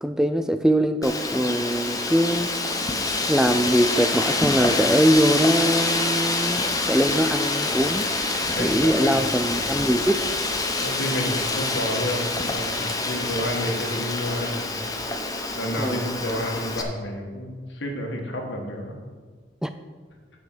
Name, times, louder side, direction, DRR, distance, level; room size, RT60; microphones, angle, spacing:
voice 1, 0.0-2.5 3.3-8.1 8.6-10.2 15.7-16.1 19.6-19.7, equal, 5° right, 9 dB, 0.3 m, -22 dB
Wind, 1.0-16.8, left 2 dB, 20° left, 0.8 m, -26 dB
voice 2, 8.6-9.2 10.8-14.7 15.5-18.9, left 1 dB, 75° left, 1 dB, 1.8 m, -30 dB
9.5 x 5.5 x 6.6 m, 1.5 s
head